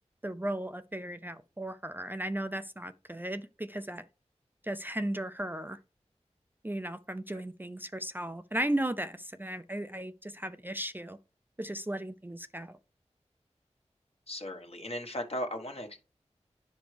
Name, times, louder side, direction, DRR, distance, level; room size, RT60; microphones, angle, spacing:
voice 1, 0.2-4.1 4.6-5.8 6.6-11.2 11.6-12.8, right 1 dB, 15° right, 0.4 m, -36 dB
voice 2, 14.3-16.0, left 1 dB, 55° left, 1.4 m, -37 dB
9.9 x 5.1 x 3.3 m
wide cardioid pair, 45°, 12 cm